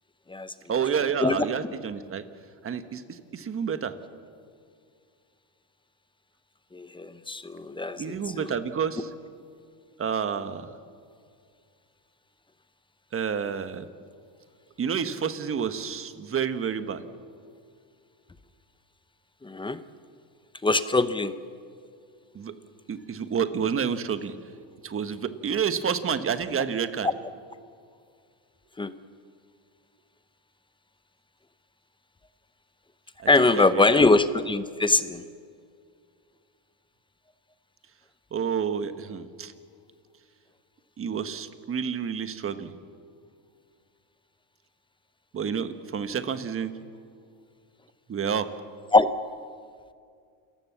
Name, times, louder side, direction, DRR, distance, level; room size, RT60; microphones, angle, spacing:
voice 1, 0.7-2.2 2.6-3.0 3.3-3.9 8.0-9.1 10.0-10.7 13.1-13.9 14.8-17.0 22.3-22.5 22.9-24.3 24.8-27.1 33.2-33.8 38.3-39.5 41.0-42.7 45.3-46.7 48.1-48.5, right 7 dB, 30° right, 10 dB, 1.4 m, -29 dB
voice 2, 6.7-8.5 19.4-19.8 20.6-21.3 27.0-27.1 28.8-28.9 33.3-35.2 48.9-49.1, left 3 dB, 10° left, 12 dB, 0.8 m, -22 dB
28.5 x 15.0 x 7.2 m, 2.2 s
supercardioid pair, 120°, 45 cm